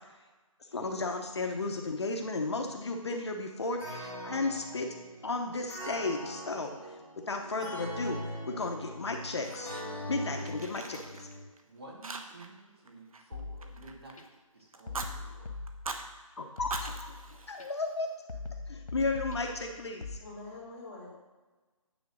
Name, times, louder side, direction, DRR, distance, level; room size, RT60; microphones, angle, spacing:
voice 1, 0.7-4.9 5.2-7.0 7.3-9.7 10.1-11.3 16.4-17.1 17.5-18.1 18.7-20.2, left 3 dB, 50° left, 3 dB, 0.9 m, -34 dB
sound 1, 3.8-11.4, equal, 5° right, 2.5 m, -41 dB
Fire, 9.0-10.1 10.4-11.6 12.0-12.6 12.9-14.3 14.7-15.1 15.7-16.1 16.6-18.1, right 3 dB, 80° right, 1.1 m, -42 dB
voice 2, 11.6-15.7, right 2 dB, 45° right, -2 dB, 2.2 m, -52 dB
sound 2, 13.3-14.2 14.9-16.2 16.6-17.7 18.3-20.2, left 3 dB, 80° left, 1.3 m, -42 dB
voice 3, 20.2-21.1, left 2 dB, 20° left, -7 dB, 2.2 m, -45 dB
9.4 x 4.0 x 6.2 m, 1.2 s
hypercardioid pair, 175°, 18 cm